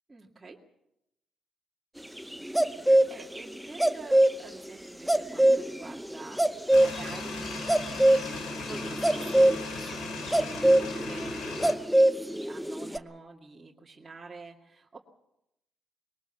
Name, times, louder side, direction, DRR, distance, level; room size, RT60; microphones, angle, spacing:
voice 1, 0.1-0.6 2.7-11.9 12.2-15.0, right 3 dB, 25° right, -3 dB, 2.2 m, -47 dB
sound 1, 2.2-4.3 4.7-4.8 5.1-13.0, right 1 dB, ahead, 0.8 m, -23 dB
sound 2, 6.7-11.7, left 3 dB, 85° left, 3.3 m, -37 dB
21.5 x 19.0 x 7.2 m, 0.83 s
cardioid pair, 90°, 0 cm